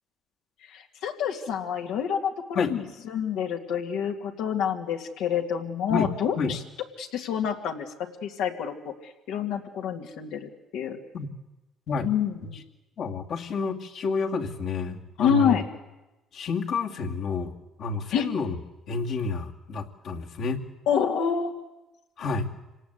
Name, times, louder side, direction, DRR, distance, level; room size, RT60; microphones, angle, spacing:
voice 1, 0.7-6.6 7.0-7.9 8.2-11.0 12.0-12.6 15.2-15.7 18.1-18.3 20.9-21.5, left 8 dB, 80° left, 3 dB, 2.4 m, -28 dB
voice 2, 13.0-15.6 16.3-17.5 17.8-18.6 18.9-20.6 22.2-22.5, left 4 dB, 65° left, 1 dB, 2.3 m, -29 dB
26.0 x 18.0 x 8.2 m, 1.0 s
supercardioid pair, 70°, 0 cm